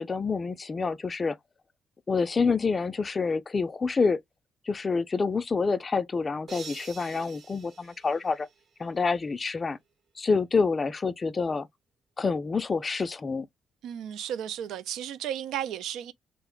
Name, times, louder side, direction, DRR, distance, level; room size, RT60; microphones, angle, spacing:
voice 1, 0.0-1.4 2.1-4.2 4.7-8.5 8.8-9.8 10.2-11.7 12.2-13.5, left 4 dB, 30° left, 0.3 m, -27 dB
sound 1, 6.5-8.8, right 5 dB, 55° right, 0.9 m, -47 dB
voice 2, 13.8-16.1, right 10 dB, 85° right, 0.3 m, -34 dB
2.4 x 2.1 x 3.7 m
cardioid pair, 90°, 0 cm